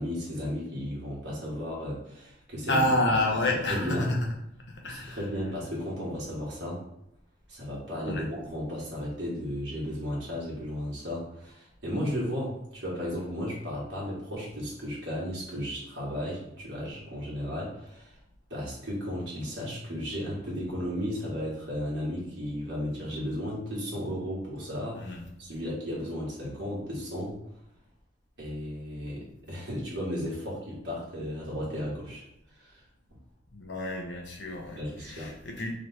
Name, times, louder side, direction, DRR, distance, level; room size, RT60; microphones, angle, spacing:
voice 1, 0.0-2.9 3.5-4.1 4.8-6.8 7.5-18.1 18.5-25.1 25.4-27.4 28.4-32.2 32.5-32.8 34.8-35.3, equal, 60° right, -6 dB, 1.5 m, -34 dB
voice 2, 2.7-4.2 4.7-5.2 8.1-8.2 25.0-25.2 33.5-35.7, left 1 dB, 70° left, 1 dB, 0.8 m, -29 dB
3.2 x 3.1 x 4.1 m, 0.81 s
head